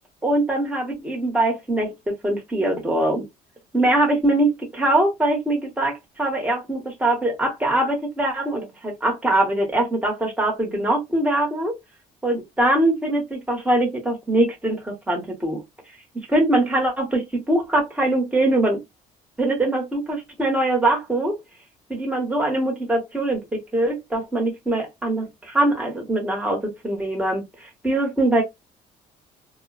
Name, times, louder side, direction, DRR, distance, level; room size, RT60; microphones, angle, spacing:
voice 1, 0.2-3.2 3.7-11.8 12.2-15.6 16.3-18.8 19.4-21.4 21.9-28.4, right 1 dB, 10° right, 1.1 m, -22 dB
2.4 x 2.2 x 2.4 m
cardioid pair, 110°, 17 cm